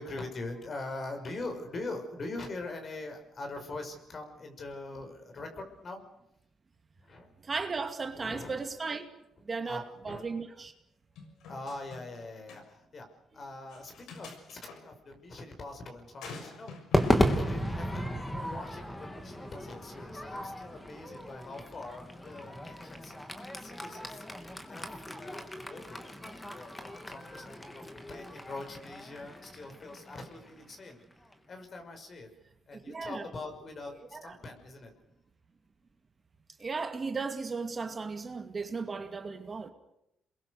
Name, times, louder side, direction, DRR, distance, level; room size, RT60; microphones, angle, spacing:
voice 1, 0.0-6.0 7.0-7.3 8.1-8.6 9.6-10.3 11.4-13.1 13.3-23.1 23.6-24.2 24.7-26.0 26.4-27.8 28.1-31.0 31.5-32.3 32.7-34.9, left 2 dB, 45° left, 5 dB, 5.9 m, -43 dB
voice 2, 7.4-9.1 9.4-10.7 32.7-33.3 34.1-34.3 36.6-39.7, right 4 dB, 35° right, 6 dB, 2.5 m, -36 dB
sound 1, 11.2-12.2 12.5-12.6 13.7-14.8 16.2-17.2, left 4 dB, 85° left, 6.4 m, -47 dB
Crowd / Fireworks, 16.9-31.3, equal, 15° left, 3.1 m, -35 dB
28.5 x 22.0 x 6.7 m, 0.83 s
cardioid pair, 90°, 0 cm